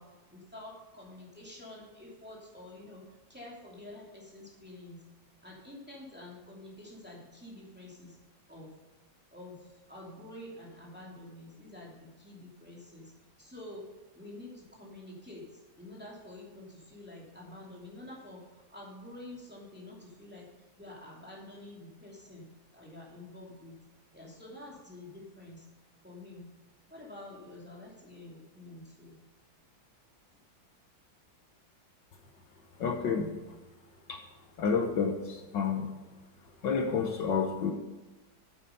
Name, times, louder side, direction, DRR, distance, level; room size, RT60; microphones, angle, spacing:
voice 1, 0.0-3.0 3.3-5.0 5.4-8.2 8.5-8.8 9.3-13.1 13.4-13.9 14.1-20.5 20.8-22.5 22.7-23.8 24.1-25.7 26.0-26.5 26.9-29.2, left 1 dB, 5° right, -4 dB, 2.6 m, -48 dB
voice 2, 32.8-33.3 34.1-34.2 34.6-35.9 36.6-37.7, left 5 dB, 70° left, 3 dB, 1.7 m, -29 dB
9.0 x 8.5 x 5.5 m, 1.1 s
omnidirectional pair, 2.1 m